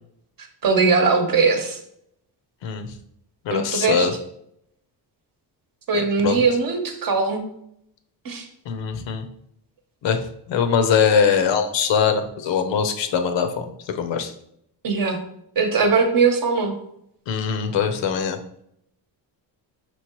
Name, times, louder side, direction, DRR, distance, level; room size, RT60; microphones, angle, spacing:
voice 1, 0.6-1.8 3.5-4.1 5.9-7.5 8.2-8.5 14.8-15.2 15.6-16.7, right 4 dB, 50° right, 4 dB, 0.9 m, -20 dB
voice 2, 3.4-4.1 5.9-6.4 8.7-9.3 10.0-10.2 10.5-14.3 17.3-18.4, left 6 dB, 75° left, 7 dB, 0.7 m, -22 dB
5.5 x 3.0 x 2.9 m, 0.74 s
cardioid pair, 105°, 44 cm